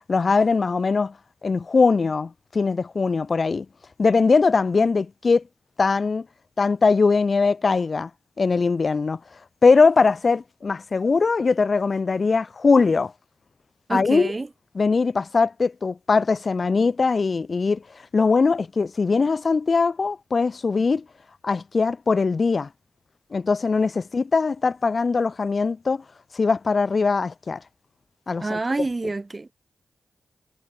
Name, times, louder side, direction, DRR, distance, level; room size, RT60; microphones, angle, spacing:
voice 1, 0.1-1.1 1.4-3.7 4.0-5.4 5.8-6.3 6.6-8.1 8.4-9.2 9.6-13.1 13.9-14.3 14.7-17.8 18.1-21.0 21.4-22.7 23.3-26.0 26.3-27.6 28.3-28.6, left 4 dB, 55° left, 2.6 m, -21 dB
voice 2, 13.9-14.5 28.4-29.5, right 3 dB, 35° right, 7.1 m, -27 dB
cardioid pair, 50°, 0 cm